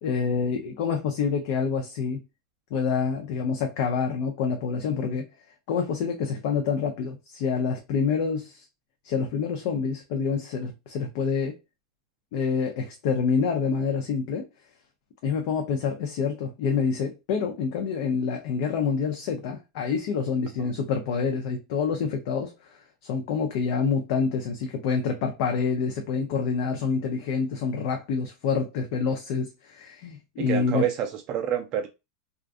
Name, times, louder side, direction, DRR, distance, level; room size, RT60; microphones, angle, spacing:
voice 1, 0.0-2.2 2.7-5.3 5.7-8.6 9.0-11.6 12.3-14.5 15.2-30.8, left 5 dB, 55° left, 0.5 m, -27 dB
voice 2, 30.4-31.9, right 10 dB, 35° right, 0.3 m, -28 dB
2.4 x 2.3 x 2.4 m
supercardioid pair, 145°, 3 cm